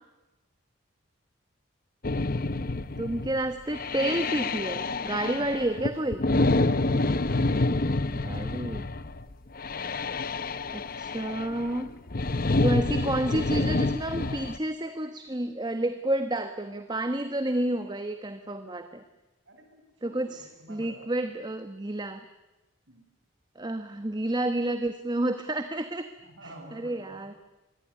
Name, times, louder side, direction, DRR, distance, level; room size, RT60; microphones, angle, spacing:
sound 1, 2.0-14.6, left 2 dB, 45° left, 0.9 m, -28 dB
voice 1, 3.0-6.2 8.1-8.9 10.7-11.9 12.6-19.0 20.0-22.2 23.5-26.1 26.4-27.3, right 1 dB, 20° right, 8 dB, 1.2 m, -30 dB
voice 2, 6.7-7.6 19.5-20.2 20.6-21.1 22.9-23.1 26.2-27.3, right 1 dB, 70° right, 4 dB, 7.9 m, -49 dB
26.0 x 21.5 x 10.0 m, 1.1 s
head